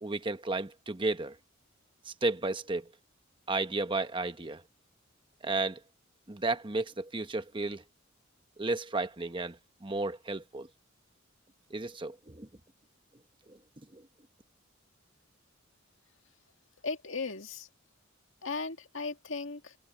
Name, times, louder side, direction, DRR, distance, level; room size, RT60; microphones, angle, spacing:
voice 1, 0.0-1.4 2.1-2.9 3.5-4.6 5.4-5.8 6.3-7.8 8.6-10.7 11.7-12.5 13.5-13.6 13.9-14.0, right 3 dB, 25° right, 1.1 m, -33 dB
voice 2, 16.8-17.7 18.4-19.8, left 4 dB, 65° left, 2.1 m, -36 dB
head